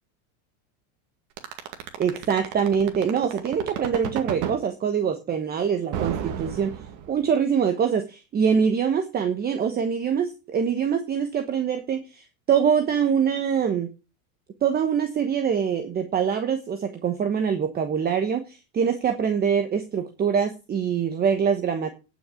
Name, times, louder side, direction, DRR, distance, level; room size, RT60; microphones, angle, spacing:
sound 1, 1.4-4.6 5.9-7.3, right 10 dB, 45° right, 2.1 m, -31 dB
voice 1, 2.0-6.8 7.1-13.9 14.6-21.9, right 7 dB, 20° right, 7 dB, 1.2 m, -24 dB
10.0 x 6.2 x 8.3 m, 0.30 s
supercardioid pair, 145°, 43 cm